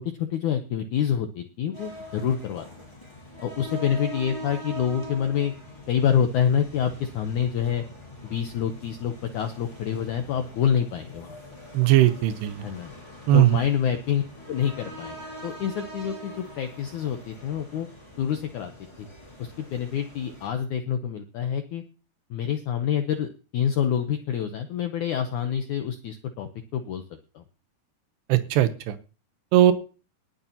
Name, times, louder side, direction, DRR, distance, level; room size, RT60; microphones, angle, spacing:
voice 1, 0.2-2.7 3.4-5.5 5.9-7.8 8.2-11.4 12.6-12.9 13.3-17.9 18.2-18.7 19.0-19.1 19.4-21.8 22.3-27.0 27.4-27.5, left 8 dB, 80° left, 6 dB, 1.8 m, -27 dB
sound 1, 1.7-20.5, equal, 5° left, 6.1 m, -43 dB
voice 2, 11.7-12.7 13.3-13.6 28.3-29.0 29.5-29.7, right 13 dB, 85° right, 11 dB, 3.0 m, -19 dB
20.0 x 9.7 x 2.9 m, 0.34 s
omnidirectional pair, 4.7 m